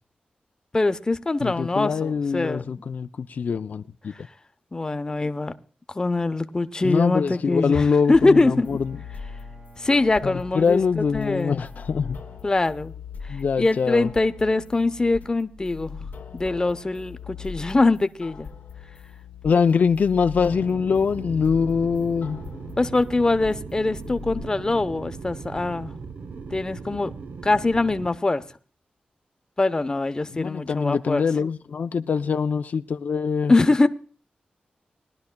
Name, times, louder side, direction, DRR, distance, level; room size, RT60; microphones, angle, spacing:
voice 1, 0.7-2.6 4.1-4.2 4.7-5.5 5.9-8.7 9.8-11.6 12.4-12.9 13.6-16.1 16.3-18.5 22.8-26.0 26.5-27.1 27.4-28.4 29.6-31.3 33.5-33.9, left 2 dB, 25° left, 0.7 m, -23 dB
voice 2, 1.4-4.3 6.8-9.0 10.2-12.2 13.3-14.1 19.4-22.4 30.3-33.5, left 6 dB, 65° left, 0.4 m, -23 dB
Bowed string instrument, 7.8-13.2, right 4 dB, 40° right, 1.5 m, -51 dB
sound 1, 8.1-24.4, left 6 dB, 85° left, 1.4 m, -41 dB
sound 2, 20.5-28.1, right 5 dB, 85° right, 0.7 m, -38 dB
21.0 x 11.5 x 2.2 m
wide cardioid pair, 120°, 3 cm